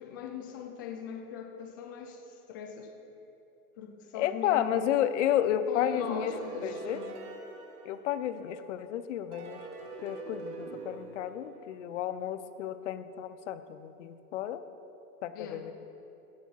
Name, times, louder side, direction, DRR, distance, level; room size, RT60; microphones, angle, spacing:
voice 1, 0.0-2.9 3.8-5.0 5.7-7.2 15.3-15.7, left 7 dB, 15° left, 4 dB, 0.4 m, -41 dB
voice 2, 4.1-6.3 6.6-7.0 7.8-9.6 10.0-14.6 15.2-15.7, left 10 dB, 50° left, 12 dB, 0.8 m, -31 dB
sound 1, 5.8-8.7 9.3-12.2, right 4 dB, 75° right, 2.3 m, -44 dB
15.0 x 7.1 x 5.7 m, 2.9 s
hypercardioid pair, 150°, 46 cm